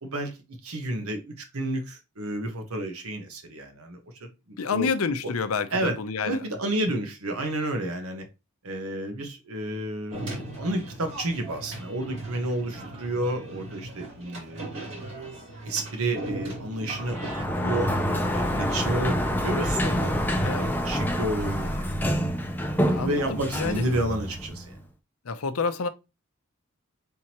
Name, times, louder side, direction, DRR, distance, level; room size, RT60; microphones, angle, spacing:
voice 1, 0.0-0.3 0.6-4.9 5.7-5.9 6.2-8.2 8.6-14.9 15.6-17.9 18.3-21.9 23.0-24.7, right 1 dB, 90° right, 1.1 m, -31 dB
voice 2, 4.6-6.5 20.4-20.7 22.8-23.8 25.2-25.9, left 5 dB, 85° left, 0.6 m, -29 dB
sound 1, 10.1-17.4, right 1 dB, 60° right, 2.1 m, -38 dB
Sliding door, 17.0-24.8, equal, 10° left, 0.5 m, -27 dB
4.5 x 3.7 x 2.9 m
head